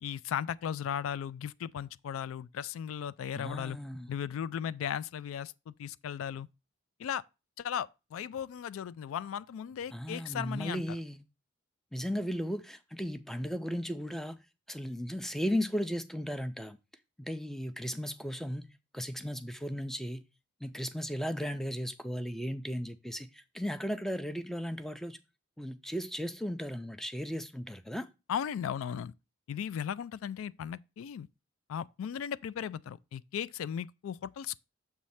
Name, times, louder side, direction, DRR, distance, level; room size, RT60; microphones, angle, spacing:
voice 1, 0.0-3.8 4.1-6.5 7.0-7.2 7.6-10.8 28.3-29.1 29.5-31.3 31.7-34.6, left 8 dB, 85° left, 0.3 m, -36 dB
voice 2, 3.3-4.1 9.9-11.2 11.9-14.4 14.7-16.8 17.2-20.2 20.6-25.2 25.6-28.1, equal, ahead, 0.3 m, -36 dB
7.1 x 3.2 x 5.6 m
head